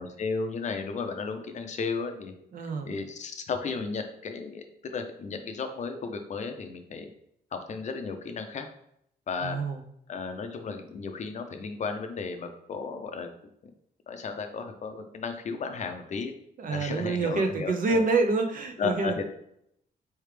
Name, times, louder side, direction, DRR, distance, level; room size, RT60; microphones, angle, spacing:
voice 1, 0.0-2.3 2.8-7.1 7.5-8.7 9.3-9.6 10.1-13.3 14.1-16.3 16.7-18.0 18.8-19.2, left 5 dB, 45° left, 6 dB, 0.6 m, -34 dB
voice 2, 2.5-2.9 9.4-9.8 16.6-19.2, right 3 dB, 55° right, 6 dB, 0.6 m, -27 dB
4.7 x 3.3 x 3.2 m, 0.74 s
wide cardioid pair, 140°, 17 cm